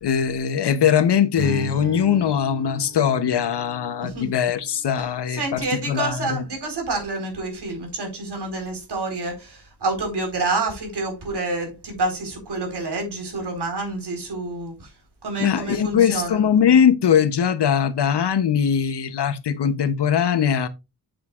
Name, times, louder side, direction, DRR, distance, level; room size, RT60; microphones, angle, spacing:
voice 1, 0.0-6.4 15.4-20.7, left 8 dB, 90° left, 0.9 m, -21 dB
Strum, 1.3-5.7, right 1 dB, 45° right, 2.3 m, -36 dB
voice 2, 5.3-14.9 15.2-16.4, right 3 dB, 85° right, 4.3 m, -28 dB
8.0 x 8.0 x 2.4 m
wide cardioid pair, 150°, 39 cm